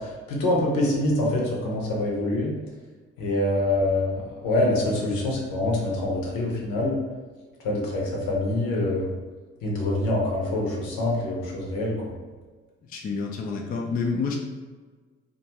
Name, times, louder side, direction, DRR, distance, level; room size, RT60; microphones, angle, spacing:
voice 1, 0.0-2.5 3.2-7.0 7.6-9.1 9.6-12.1, left 1 dB, 65° left, -2 dB, 0.8 m, -25 dB
voice 2, 12.9-14.4, left 4 dB, 25° left, 1 dB, 0.4 m, -28 dB
2.5 x 2.3 x 2.9 m, 1.4 s
figure-of-eight pair, 40°, 36 cm